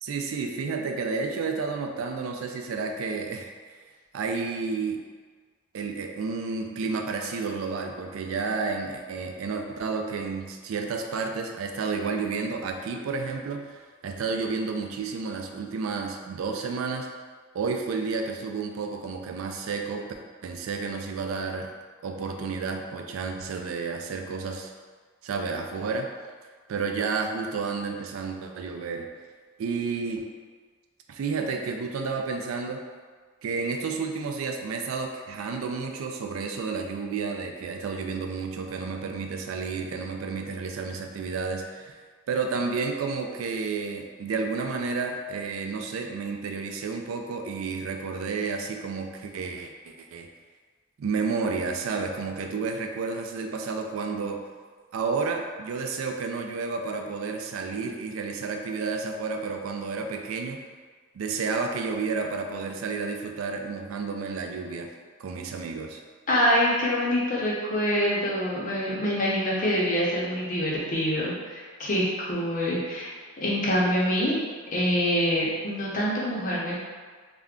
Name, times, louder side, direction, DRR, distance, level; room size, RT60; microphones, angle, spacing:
voice 1, 0.0-3.8 4.1-5.0 5.7-17.1 17.5-20.1 20.4-21.7 22.0-24.7 25.2-26.1 26.7-29.1 29.6-30.2 31.1-32.8 33.4-42.0 42.3-50.3 51.0-54.4 54.9-60.6 61.1-64.9 65.2-66.0, right 4 dB, 90° right, 4 dB, 0.3 m, -31 dB
voice 2, 66.3-73.1 73.4-74.4 74.7-76.8, equal, 40° left, -5 dB, 0.7 m, -25 dB
2.4 x 2.1 x 3.5 m, 1.5 s
head